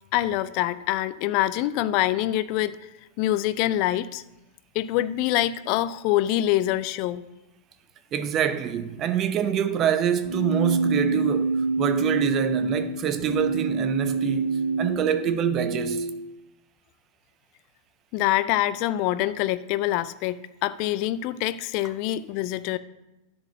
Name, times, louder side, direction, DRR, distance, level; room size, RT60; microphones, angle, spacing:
voice 1, 0.1-2.8 3.2-4.2 4.7-7.2 18.1-22.8, left 14 dB, 45° left, 0.5 m, -25 dB
voice 2, 8.1-16.1, right 9 dB, 30° right, 0.7 m, -26 dB
Keyboard (musical), 10.2-16.2, right 3 dB, 75° right, 1.6 m, -26 dB
10.5 x 4.7 x 7.5 m
figure-of-eight pair, 90°, 0 cm